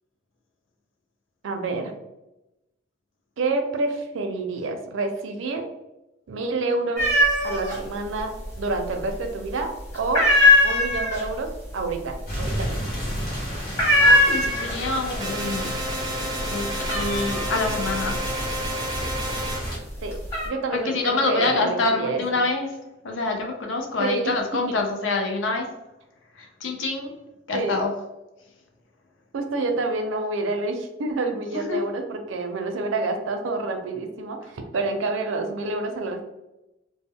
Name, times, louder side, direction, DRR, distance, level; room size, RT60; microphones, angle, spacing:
voice 1, 1.4-1.9 3.4-5.6 6.3-7.0 7.4-8.3 8.6-10.3 10.6-12.8 20.0-22.4 24.0-24.3 27.5-27.8 29.3-36.2, right 3 dB, 75° right, 5 dB, 0.4 m, -28 dB
sound 1, 7.0-7.8 8.1-8.9 9.2-9.6 9.9-15.0 15.3-15.9 16.2-19.4 19.9-20.5, left 1 dB, 15° left, 0.9 m, -20 dB
sound 2, 12.3-19.8, equal, 50° left, 0.9 m, -32 dB
voice 2, 13.9-15.7 16.0-18.3 20.7-22.8 23.0-25.7 26.4-27.1 27.5-27.9 31.5-31.8, left 3 dB, 70° left, 2 dB, 0.5 m, -26 dB
sound 3, 15.2-19.6, right 1 dB, 20° right, 0.4 m, -31 dB
2.1 x 2.1 x 3.5 m, 0.95 s
head